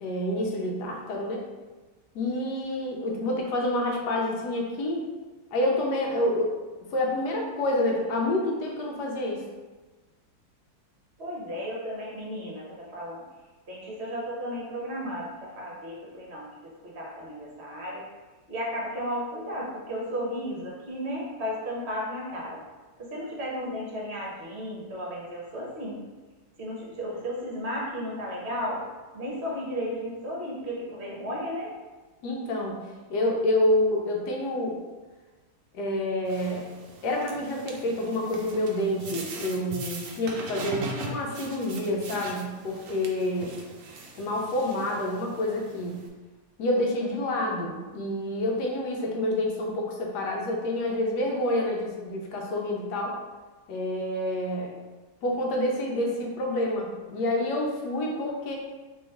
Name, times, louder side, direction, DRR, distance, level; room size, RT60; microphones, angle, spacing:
voice 1, 0.0-1.4 2.1-5.0 5.5-6.5 6.9-9.4 32.2-32.8 33.1-34.8 35.7-36.7 37.0-43.5 44.1-45.9 46.6-53.2 53.7-54.7 55.2-58.5, left 1 dB, 75° left, 0 dB, 1.2 m, -28 dB
voice 2, 11.2-13.2 13.7-16.5 16.8-18.0 18.5-22.6 23.0-26.0 26.6-28.8 29.1-31.7, equal, 45° right, -4 dB, 1.0 m, -34 dB
sound 1, 36.2-46.1, right 2 dB, 75° right, 0.7 m, -41 dB
3.1 x 3.0 x 3.5 m, 1.3 s
omnidirectional pair, 1.9 m